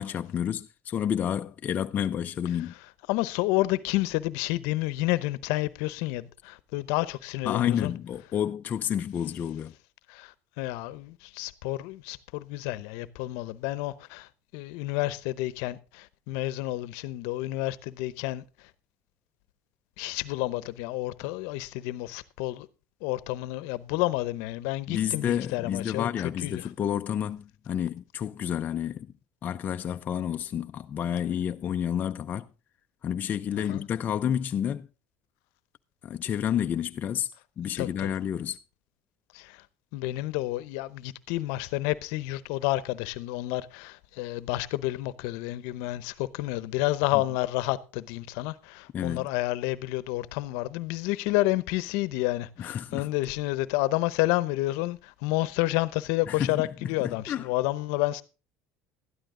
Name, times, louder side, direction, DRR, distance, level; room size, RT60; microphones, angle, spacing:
voice 1, 0.0-2.7 7.4-9.7 24.9-29.1 29.4-32.5 33.0-34.9 36.0-38.6 48.9-49.3 52.6-53.1 56.3-56.7 57.0-57.5, left 9 dB, 35° left, 0.5 m, -30 dB
voice 2, 3.1-7.9 10.1-18.4 20.0-22.7 23.0-26.1 26.4-26.7 33.7-33.8 37.8-38.1 39.3-39.6 39.9-58.2, left 18 dB, 75° left, 0.8 m, -30 dB
12.5 x 11.5 x 3.8 m
supercardioid pair, 120°, 5 cm